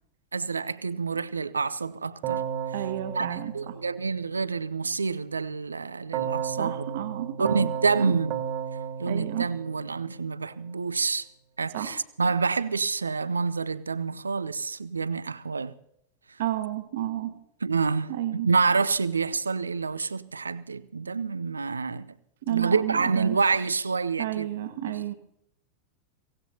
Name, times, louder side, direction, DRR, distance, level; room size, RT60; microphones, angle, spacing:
voice 1, 0.3-2.4 3.1-6.8 7.4-8.3 9.0-11.3 11.6-15.7 17.6-22.1 22.5-24.5, right 4 dB, 75° right, 0.5 m, -27 dB
Keyboard (musical), 2.2-4.5 6.1-10.4, right 8 dB, 40° right, 1.7 m, -34 dB
voice 2, 2.7-3.8 6.6-7.7 8.0-8.2 9.0-9.5 11.7-11.9 16.4-17.4 18.1-18.5 22.4-23.4 24.2-25.1, right 13 dB, 55° right, 1.4 m, -31 dB
23.5 x 17.5 x 2.9 m
figure-of-eight pair, 90°, 0 cm